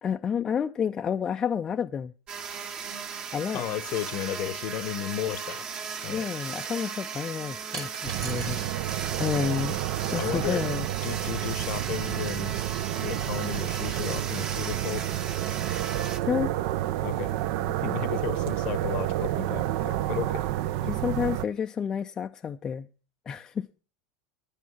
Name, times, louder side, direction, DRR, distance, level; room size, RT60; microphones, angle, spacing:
voice 1, 0.0-2.1 3.3-3.6 6.1-8.6 9.2-9.8 10.1-10.9 16.3-16.5 20.8-22.9 23.3-23.7, left 7 dB, 25° left, 0.4 m, -30 dB
sound 1, 2.3-16.2, right 6 dB, 35° right, 1.2 m, -36 dB
voice 2, 3.5-5.7 6.0-6.3 10.2-10.7 11.0-12.6 13.0-15.1 17.0-17.3 17.6-20.5, left 12 dB, 50° left, 0.8 m, -34 dB
sound 2, 5.8-6.0 7.7-8.7 9.0-9.9, right 4 dB, 80° right, 3.5 m, -42 dB
sound 3, 8.0-21.5, right 14 dB, 55° right, 0.6 m, -30 dB
10.5 x 8.4 x 5.6 m
figure-of-eight pair, 85°, 2 cm